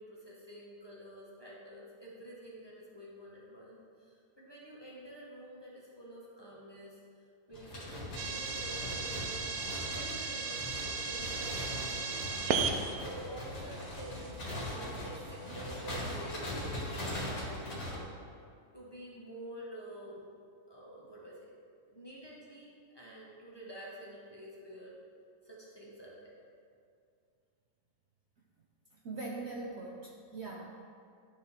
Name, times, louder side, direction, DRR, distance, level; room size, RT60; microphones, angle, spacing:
voice 1, 0.0-7.0 7.5-9.4 9.9-12.3 13.0-18.2 18.7-20.3 20.7-21.5 21.9-25.0 25.4-26.3, right 1 dB, 15° left, -6 dB, 0.9 m, -49 dB
sound 1, 7.5-18.0, left 1 dB, 60° left, 2.3 m, -40 dB
sound 2, 8.2-16.4, right 5 dB, 70° right, 0.9 m, -38 dB
voice 2, 28.9-30.8, right 3 dB, 85° right, -2 dB, 0.6 m, -42 dB
11.5 x 4.5 x 3.6 m, 2.3 s
omnidirectional pair, 2.0 m